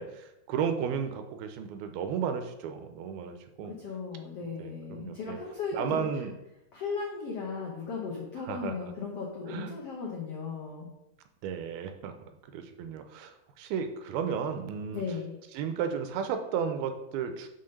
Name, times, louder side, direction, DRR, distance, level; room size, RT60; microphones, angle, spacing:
voice 1, 0.0-3.8 4.6-5.4 5.7-6.3 8.5-8.7 9.5-9.7 11.4-12.1 12.5-15.0 15.5-17.5, right 7 dB, 85° right, 7 dB, 2.5 m, -33 dB
voice 2, 3.6-6.0 6.7-10.9 14.9-15.3, left 5 dB, 80° left, -1 dB, 1.4 m, -36 dB
6.0 x 5.7 x 6.5 m, 0.90 s
omnidirectional pair, 4.4 m